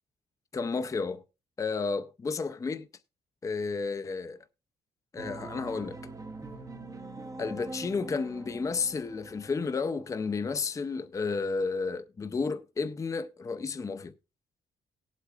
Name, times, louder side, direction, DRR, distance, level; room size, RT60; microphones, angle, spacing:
voice 1, 0.5-1.2 1.6-2.9 3.4-4.4 5.1-6.0 7.4-14.1, left 4 dB, 20° left, 0.5 m, -32 dB
sound 1, 5.2-10.3, right 2 dB, 20° right, 0.7 m, -43 dB
19.0 x 8.2 x 2.3 m
cardioid pair, 155°, 17 cm